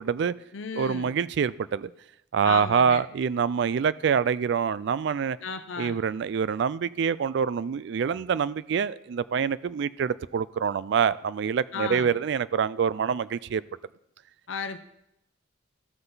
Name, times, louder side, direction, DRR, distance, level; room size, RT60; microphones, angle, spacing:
voice 1, 0.0-0.3 0.7-1.9 2.3-5.4 5.8-13.6, right 6 dB, 60° right, 0.3 m, -26 dB
voice 2, 0.5-1.1 2.4-3.0 5.4-6.0 11.7-12.2 14.5-14.8, left 5 dB, 70° left, 0.6 m, -34 dB
14.5 x 5.6 x 3.9 m
head